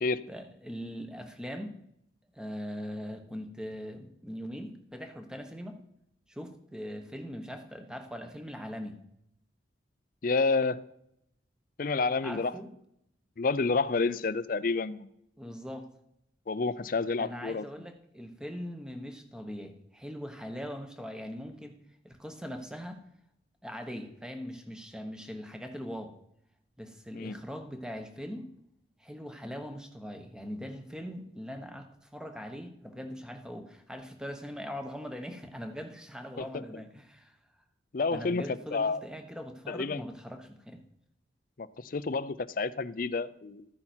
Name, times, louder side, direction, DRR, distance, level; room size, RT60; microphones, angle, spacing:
voice 1, 0.3-1.8 2.3-5.8 6.3-9.0 12.2-12.7 15.4-15.9 17.2-21.8 22.0-23.0 23.6-26.1 26.8-28.5 29.0-37.4 38.1-40.8, equal, 5° right, 6 dB, 1.1 m, -41 dB
voice 2, 10.2-10.8 11.8-12.5 13.4-15.1 16.5-17.6 27.1-27.4 36.4-36.5 36.7-36.8 37.9-39.0 39.7-40.0 41.6-43.7, left 4 dB, 50° left, 16 dB, 0.5 m, -29 dB
13.5 x 9.8 x 4.5 m, 0.77 s
head